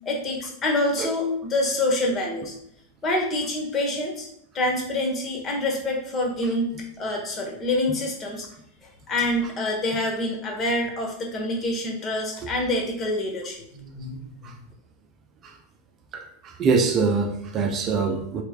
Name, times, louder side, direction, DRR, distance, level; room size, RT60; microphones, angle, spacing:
voice 1, 0.0-2.5 3.0-4.3 4.5-8.5 9.1-14.3, left 1 dB, 30° left, 0 dB, 1.2 m, -26 dB
voice 2, 16.1-18.4, right 4 dB, 35° right, 3 dB, 0.5 m, -24 dB
4.5 x 3.3 x 2.4 m, 0.69 s
figure-of-eight pair, 90°, 0 cm